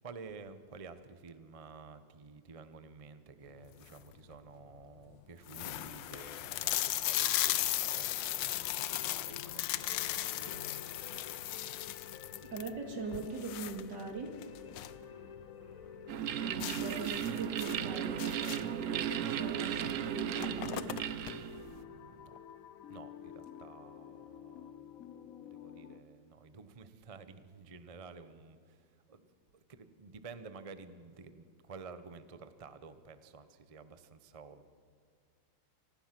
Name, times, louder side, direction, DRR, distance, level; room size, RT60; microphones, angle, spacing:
voice 1, 0.0-11.3 21.6-22.4 22.9-29.2 29.5-34.7, right 4 dB, 40° right, 11 dB, 0.4 m, -52 dB
sound 1, 3.6-4.1 4.7-4.8 5.1-5.2 5.5-15.0 15.4-15.5 15.8-15.9 16.6-18.8 19.8-19.9 20.2-21.3, left 14 dB, 75° left, 1.3 m, -36 dB
sound 2, 8.5-26.0, left 8 dB, 55° left, 1.1 m, -51 dB
voice 2, 12.4-15.3 15.6-21.6, right 4 dB, 60° right, 4 dB, 2.8 m, -43 dB
sound 3, 16.1-21.8, right 10 dB, 75° right, 0.7 m, -36 dB
26.0 x 18.0 x 6.0 m, 2.1 s
omnidirectional pair, 2.1 m